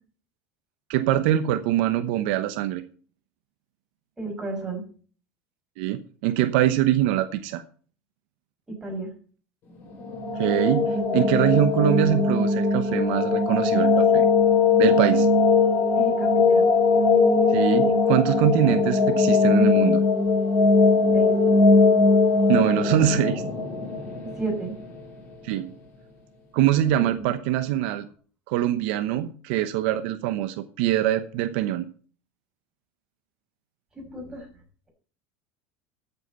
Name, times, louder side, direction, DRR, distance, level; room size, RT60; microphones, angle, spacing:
voice 1, 0.9-2.8 5.8-7.6 10.4-14.3 14.8-15.3 17.5-20.0 22.5-23.4 25.4-25.7 26.5-28.1 28.5-31.9, right 12 dB, 65° right, 10 dB, 1.0 m, -23 dB
voice 2, 4.2-4.8 8.7-9.1 16.0-16.7 21.1-21.3 24.2-24.8 27.0-27.2 33.9-34.5, right 3 dB, 10° right, 0 dB, 6.3 m, -32 dB
sound 1, 9.9-24.8, left 4 dB, 35° left, 5.7 m, -20 dB
13.5 x 8.2 x 5.6 m, 0.42 s
supercardioid pair, 155°, 6 cm